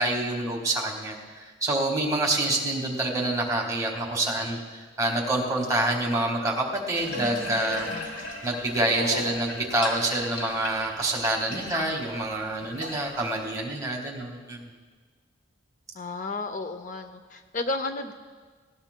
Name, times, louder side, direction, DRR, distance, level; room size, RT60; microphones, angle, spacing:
voice 1, 0.0-14.6, right 2 dB, 15° right, 0 dB, 1.6 m, -27 dB
Water tap faucet / Bathtub (filling or washing), 6.9-13.4, left 1 dB, 85° left, 3.0 m, -36 dB
voice 2, 15.9-18.1, left 2 dB, 40° left, 8 dB, 0.5 m, -33 dB
19.0 x 17.5 x 2.2 m, 1.5 s
head